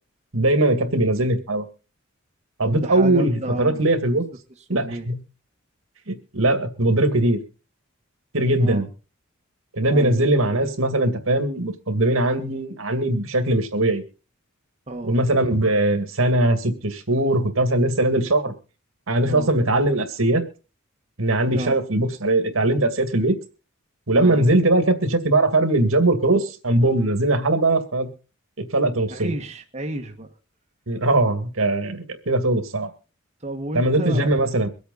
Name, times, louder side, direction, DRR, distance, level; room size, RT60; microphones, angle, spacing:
voice 1, 0.3-1.7 2.6-4.2 4.7-5.2 6.1-7.4 8.3-8.9 9.7-14.0 15.0-18.5 19.1-20.4 21.2-23.4 24.1-28.1 28.6-29.3 30.9-32.9 33.7-34.7, right 2 dB, 70° right, 8 dB, 2.2 m, -20 dB
voice 2, 2.6-3.9 4.7-5.1 8.6-8.8 9.9-10.2 14.9-15.2 19.3-19.5 21.5-21.8 24.1-24.4 29.1-30.3 33.4-34.3, right 2 dB, 30° right, 3 dB, 1.4 m, -31 dB
24.0 x 8.4 x 4.0 m, 0.33 s
head